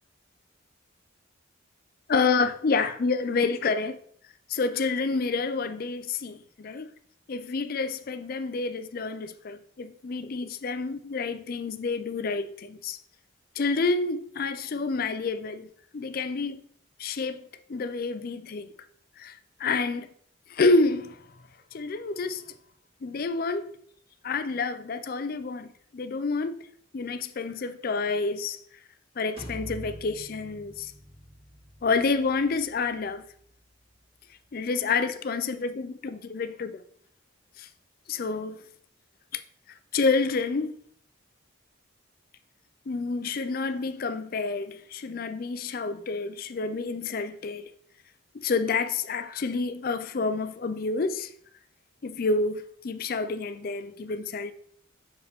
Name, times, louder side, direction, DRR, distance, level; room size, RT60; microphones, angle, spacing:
voice 1, 2.1-4.0 4.5-6.9 7.3-13.0 13.6-16.6 17.0-18.7 19.2-20.1 20.5-21.2 21.7-22.4 23.0-23.7 24.2-26.7 26.9-28.6 29.2-30.9 31.8-33.2 34.5-36.8 37.6-37.7 38.1-38.6 39.9-40.8 42.9-47.7 48.3-51.3 52.0-54.5, left 4 dB, 45° left, 0.4 m, -28 dB
sound 1, 29.4-35.0, equal, 30° right, 2.0 m, -46 dB
6.6 x 4.7 x 3.5 m
head